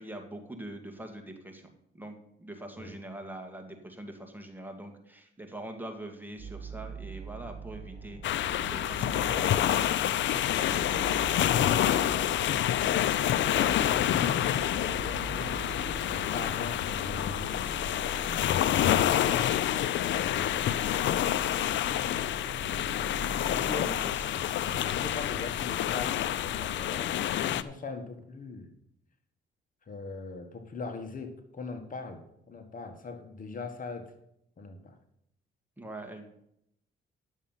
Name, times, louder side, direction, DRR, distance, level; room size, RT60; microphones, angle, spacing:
voice 1, 0.0-10.1 10.6-10.9 23.5-24.3 35.8-36.3, right 1 dB, 10° right, 4 dB, 2.0 m, -44 dB
sound 1, 6.4-25.2, right 4 dB, 35° right, 2.7 m, -44 dB
sound 2, 8.2-27.6, left 11 dB, 70° left, 0.5 m, -28 dB
sound 3, 9.3-22.0, left 1 dB, 15° left, 5.4 m, -55 dB
voice 2, 13.5-18.4 22.5-22.7 23.5-23.9 24.6-27.1 27.5-28.7 29.9-32.2 32.5-34.1 34.6-35.0, left 3 dB, 45° left, 6 dB, 1.5 m, -41 dB
11.0 x 7.3 x 5.6 m, 0.76 s
cardioid pair, 90°, 20 cm